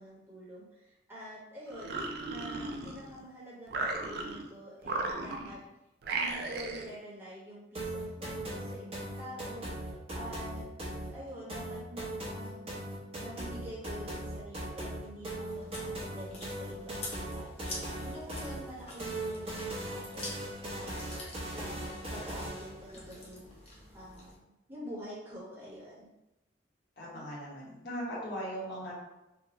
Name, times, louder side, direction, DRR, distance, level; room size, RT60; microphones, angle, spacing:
voice 1, 0.0-5.6 6.1-10.7 11.1-12.8 13.2-20.3 20.7-21.0 21.5-26.1, equal, 15° right, -8 dB, 1.2 m, -47 dB
sound 1, 1.7-3.2 3.7-4.5 4.8-5.6 6.0-6.9, right 3 dB, 60° right, 0.4 m, -36 dB
sound 2, 7.7-22.8, right 1 dB, 35° right, 1.0 m, -39 dB
Chewing mastication, 15.5-24.3, left 2 dB, 35° left, 0.8 m, -47 dB
voice 2, 27.0-28.9, equal, 75° left, -6 dB, 1.3 m, -39 dB
3.6 x 2.3 x 2.9 m, 0.94 s
head